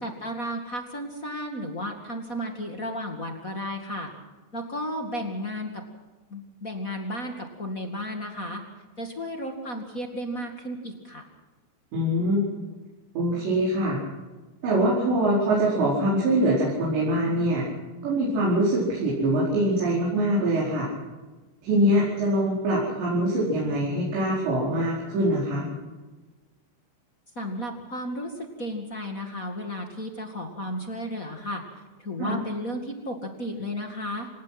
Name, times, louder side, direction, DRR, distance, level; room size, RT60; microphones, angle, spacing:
voice 1, 0.0-4.1 4.5-5.8 6.3-8.6 9.0-11.2 27.3-28.3 28.6-31.6 32.0-34.3, equal, 40° left, 3 dB, 1.2 m, -33 dB
voice 2, 11.9-12.6 13.2-14.0 14.6-17.7 18.0-20.9 21.6-25.7 32.2-32.3, right 1 dB, 70° right, -5 dB, 7.1 m, -23 dB
27.5 x 18.0 x 6.0 m, 1.3 s
omnidirectional pair, 5.3 m